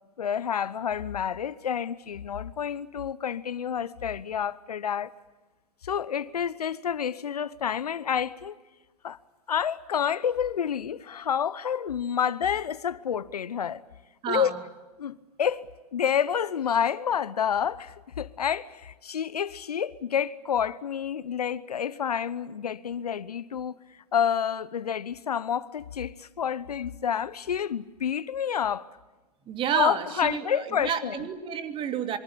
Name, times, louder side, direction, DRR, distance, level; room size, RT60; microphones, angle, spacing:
voice 1, 0.2-5.1 5.8-8.5 9.0-9.2 9.5-13.8 14.3-14.6 15.0-23.7 24.1-28.9 29.8-31.3, left 8 dB, 65° left, 1.1 m, -29 dB
voice 2, 14.2-14.5 29.5-32.2, right 8 dB, 25° right, 2.8 m, -30 dB
26.5 x 24.0 x 8.5 m
figure-of-eight pair, 110°, 21 cm